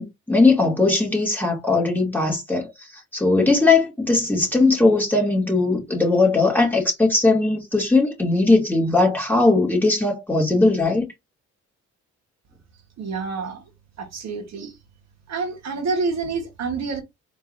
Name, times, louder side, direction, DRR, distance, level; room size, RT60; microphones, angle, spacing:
voice 1, 0.0-2.7 3.1-11.1, left 3 dB, 5° left, 2.5 m, -19 dB
voice 2, 13.0-13.6 14.0-14.8 15.3-17.0, right 4 dB, 60° right, 1.5 m, -28 dB
4.4 x 3.0 x 2.7 m
cardioid pair, 90°, 30 cm